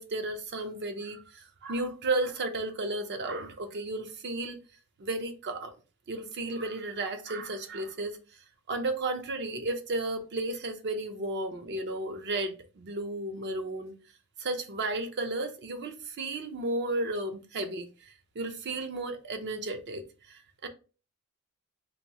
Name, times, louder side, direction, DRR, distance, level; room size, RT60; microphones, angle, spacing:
voice 1, 0.0-4.6 5.0-5.7 6.1-8.2 8.7-13.9 14.4-20.7, right 2 dB, 50° right, 0.5 m, -33 dB
2.9 x 2.2 x 2.8 m
head